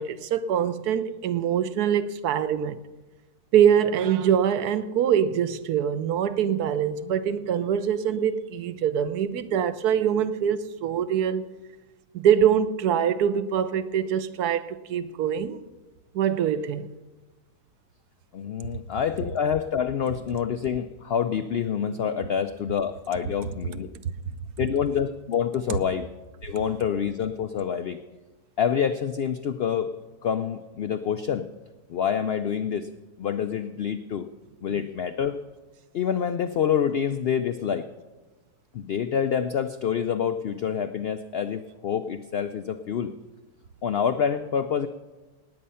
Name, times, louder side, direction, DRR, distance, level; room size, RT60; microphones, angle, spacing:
voice 1, 0.0-2.8 3.5-11.4 12.1-15.6 16.1-16.9 24.0-24.3 25.7-25.8, right 9 dB, 75° right, 1.2 m, -24 dB
voice 2, 18.3-23.9 24.6-26.1 26.4-28.0 28.6-29.9 30.2-31.5 31.9-32.9 33.2-34.3 34.6-35.4 35.9-37.9 38.7-43.1 43.8-44.9, left 8 dB, 90° left, 0.5 m, -27 dB
18.5 x 8.7 x 5.6 m
omnidirectional pair, 1.7 m